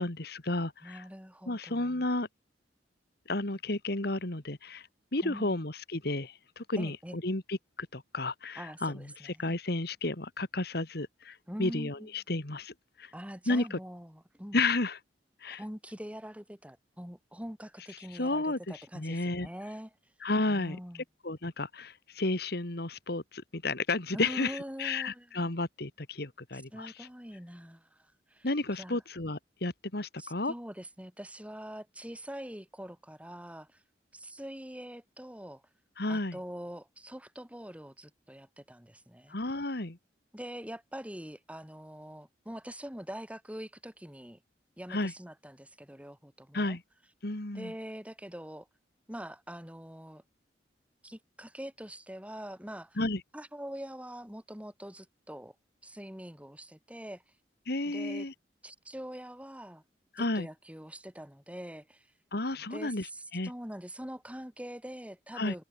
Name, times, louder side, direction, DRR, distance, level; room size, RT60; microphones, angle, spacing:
voice 1, 0.0-1.0 1.5-2.3 3.3-13.1 13.5-13.8 14.5-15.0 15.4-15.6 18.1-19.5 20.2-20.8 21.2-27.1 28.4-30.5 36.0-36.4 39.3-40.0 44.9-45.1 46.5-46.8 47.2-47.7 53.0-53.2 57.7-58.3 60.1-60.5 62.3-63.5 65.3-65.5, left 2 dB, 60° left, 2.2 m, -32 dB
voice 2, 0.8-2.1 5.2-5.6 6.8-7.2 8.6-9.6 11.5-12.1 13.1-14.6 15.4-19.9 20.5-21.0 24.1-25.5 26.5-28.5 28.8-29.0 30.2-33.8 34.1-35.6 36.1-39.3 40.3-44.4 44.8-46.8 47.5-48.7 49.1-50.2 51.0-53.0 53.3-55.5 55.8-57.2 57.8-58.3 58.6-59.8 60.2-62.1 62.7-65.6, equal, 5° right, 6.7 m, -44 dB
head